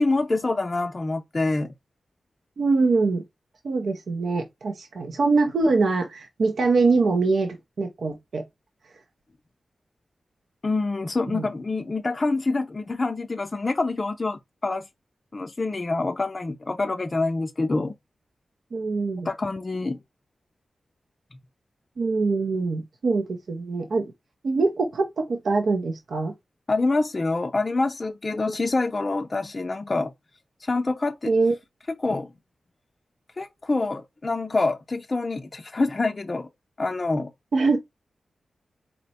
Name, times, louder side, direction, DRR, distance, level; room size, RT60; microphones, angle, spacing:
voice 1, 0.0-1.7 10.6-14.9 15.3-17.9 19.2-20.0 26.7-30.1 30.6-31.3 32.0-32.3 33.4-36.5 36.8-37.3, left 3 dB, 40° left, 0.4 m, -26 dB
voice 2, 2.6-3.2 3.6-8.4 11.3-11.5 18.7-19.3 22.0-24.1 24.4-26.3 31.3-31.5 37.5-37.8, right 3 dB, 80° right, 0.7 m, -23 dB
4.3 x 2.0 x 4.1 m
cardioid pair, 65°, 0 cm